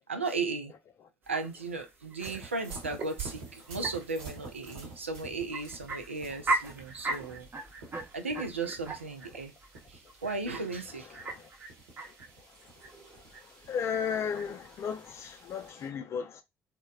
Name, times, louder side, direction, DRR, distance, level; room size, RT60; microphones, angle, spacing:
voice 1, 0.1-0.7 1.3-7.5 8.1-9.5 9.9-11.2, right 3 dB, 85° right, 0.4 m, -36 dB
sound 1, 1.2-15.7, right 2 dB, 30° right, 0.8 m, -39 dB
sound 2, 2.2-15.9, right 5 dB, 70° right, 0.9 m, -49 dB
voice 2, 13.7-16.4, left 7 dB, 45° left, 0.5 m, -34 dB
2.8 x 2.1 x 2.3 m
figure-of-eight pair, 50°, 7 cm